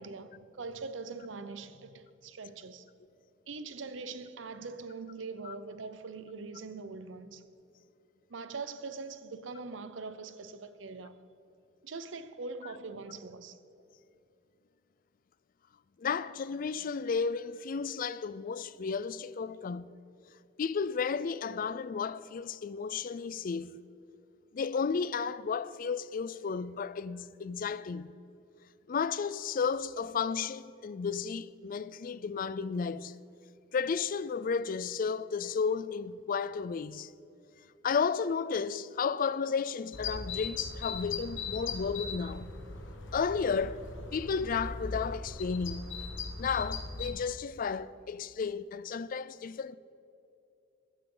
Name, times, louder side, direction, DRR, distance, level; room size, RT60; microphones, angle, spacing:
voice 1, 0.0-2.8 3.5-7.5 8.3-11.2 11.8-13.6, right 4 dB, 80° right, 0.7 m, -42 dB
voice 2, 16.0-19.9 20.6-23.8 24.5-28.1 28.9-33.2 33.7-37.1 37.8-42.6 43.1-43.8 44.1-46.0 46.4-49.8, left 5 dB, 45° left, 0.4 m, -33 dB
sound 1, 39.9-47.1, left 4 dB, 75° left, 1.2 m, -39 dB
14.5 x 12.5 x 3.9 m
head